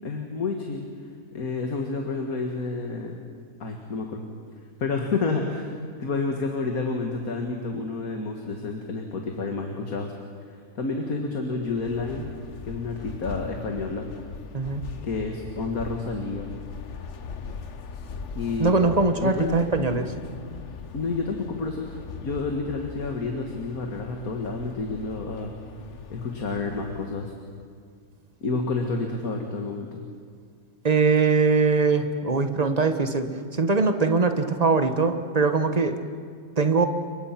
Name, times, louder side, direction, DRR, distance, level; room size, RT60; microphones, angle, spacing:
voice 1, 0.0-0.9 1.3-3.2 3.6-4.2 4.8-5.7 6.0-10.1 10.5-12.3 12.6-14.1 15.0-16.5 18.3-18.7 19.2-19.8 20.9-25.5 26.1-27.3 28.4-30.0, left 3 dB, 75° left, 3 dB, 2.2 m, -29 dB
sound 1, 11.6-27.4, left 5 dB, 55° left, 1.3 m, -40 dB
voice 2, 18.6-20.1 30.8-35.9 36.6-36.9, right 4 dB, 30° right, 8 dB, 1.4 m, -22 dB
28.5 x 23.5 x 5.9 m, 2.1 s
omnidirectional pair, 1.6 m